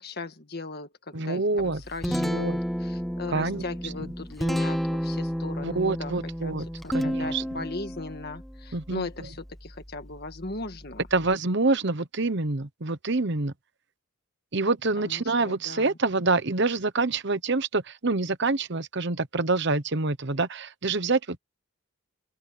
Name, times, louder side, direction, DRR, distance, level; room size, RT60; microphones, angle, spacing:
voice 1, 0.0-2.5 2.8-6.2 6.4-6.5 6.8-11.1 15.0-16.0, left 2 dB, 45° left, 1.8 m, -38 dB
voice 2, 1.1-1.8 2.1-2.6 3.3-3.6 5.6-6.7 6.9-7.4 8.7-9.1 11.1-13.5 14.5-21.4, right 3 dB, 55° right, 1.0 m, -26 dB
Guitar, 1.6-11.3, equal, ahead, 0.9 m, -32 dB
open air
head